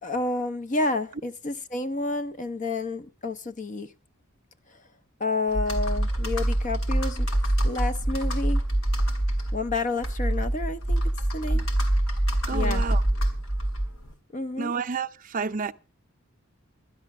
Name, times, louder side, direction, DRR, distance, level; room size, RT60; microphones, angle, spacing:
voice 1, 0.0-3.9 5.2-7.3 7.6-8.6 9.5-11.6 12.5-12.8 14.3-14.7, left 2 dB, 40° left, 0.6 m, -30 dB
Computer keyboard, 5.5-14.1, right 1 dB, 90° left, 2.7 m, -25 dB
voice 2, 12.5-13.0 14.6-15.7, right 5 dB, 40° right, 0.6 m, -30 dB
12.5 x 11.0 x 5.8 m
head